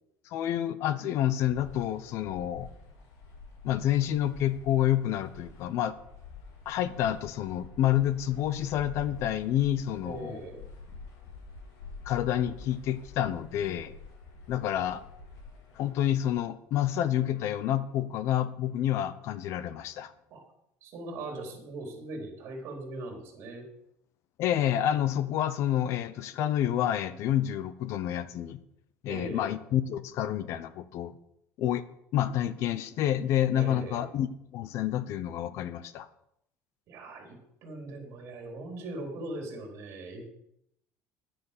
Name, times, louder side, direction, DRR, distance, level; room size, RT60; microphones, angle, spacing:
voice 1, 0.3-2.7 3.6-5.9 6.7-10.4 12.0-13.9 14.5-15.0 15.8-20.1 24.4-28.6 29.0-31.1 31.6-31.8 32.1-36.1, left 11 dB, 50° left, 15 dB, 0.8 m, -28 dB
sound 1, 1.4-16.3, left 3 dB, 80° left, 4.3 m, -48 dB
voice 2, 10.0-10.6 20.3-20.4 20.8-23.6 29.1-29.5 33.5-34.1 36.9-37.4 37.6-40.2, right 2 dB, 45° right, 2 dB, 4.1 m, -40 dB
10.5 x 9.7 x 6.8 m, 0.78 s
cardioid pair, 170°, 6 cm